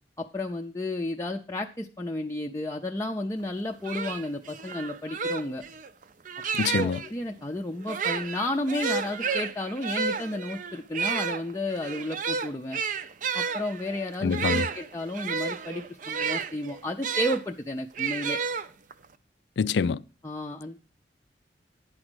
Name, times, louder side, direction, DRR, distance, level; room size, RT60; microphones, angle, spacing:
voice 1, 0.2-5.6 6.7-12.8 13.3-18.4 20.2-20.8, left 1 dB, 15° left, 0.5 m, -32 dB
sound 1, 3.5-3.6 3.8-7.1 7.8-17.4 18.0-19.1, right 6 dB, 50° right, 0.5 m, -31 dB
voice 2, 6.5-7.0 14.2-14.7 19.6-20.0, left 5 dB, 70° left, 0.4 m, -25 dB
9.6 x 5.0 x 6.2 m
head